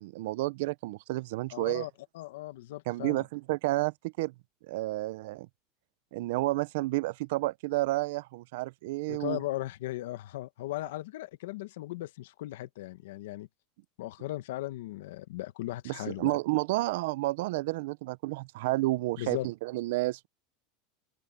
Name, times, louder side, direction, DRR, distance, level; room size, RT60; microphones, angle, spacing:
voice 1, 0.0-1.9 2.9-4.3 4.7-5.5 6.1-9.4 15.9-20.3, right 19 dB, 70° right, 0.5 m, -31 dB
voice 2, 1.5-3.2 9.1-13.5 14.0-16.4 19.2-19.5, left 16 dB, 80° left, 1.2 m, -37 dB
open air
supercardioid pair, 150°, 0 cm